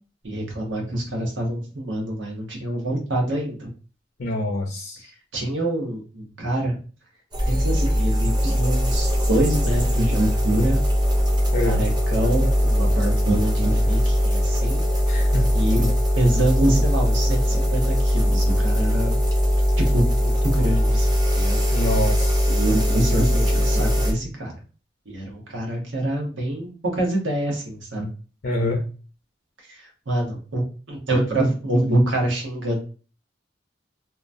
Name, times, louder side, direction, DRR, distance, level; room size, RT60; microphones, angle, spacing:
voice 1, 0.2-3.7 5.3-6.8 7.5-10.8 11.6-14.8 15.5-19.2 19.8-21.1 21.3-21.6 22.5-24.5 25.1-28.1 29.7-32.8, right 1 dB, 85° right, 0 dB, 1.1 m, -25 dB
voice 2, 4.2-5.0 11.5-11.8 15.1-15.5 21.7-22.4 28.4-28.8, left 1 dB, 55° left, 0 dB, 0.5 m, -25 dB
sound 1, 7.3-24.1, equal, 20° right, 0.6 m, -20 dB
2.8 x 2.2 x 2.5 m, 0.36 s
head